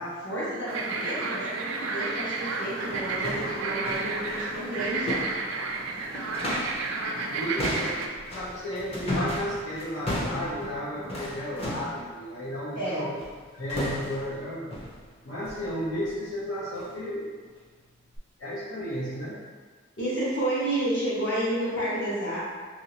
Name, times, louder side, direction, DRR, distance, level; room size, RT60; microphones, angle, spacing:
voice 1, 0.0-5.2 12.7-13.1 20.0-22.4, right 1 dB, 60° left, -9 dB, 1.1 m, -30 dB
sound 1, 0.7-8.1, right 3 dB, 75° right, 0.4 m, -31 dB
sound 2, 2.1-2.2 2.7-6.9 7.2-12.0 13.2-13.4 13.7-14.3 14.7-15.0 15.4-15.7 16.0-16.2 16.7-16.9 17.4-17.5 18.2-18.3, left 1 dB, 30° left, 0.6 m, -35 dB
voice 2, 7.1-8.0 8.3-13.1 13.6-14.8 15.2-17.3 18.4-19.4, equal, 90° left, -10 dB, 0.9 m, -33 dB
3.1 x 2.7 x 2.9 m, 1.5 s
head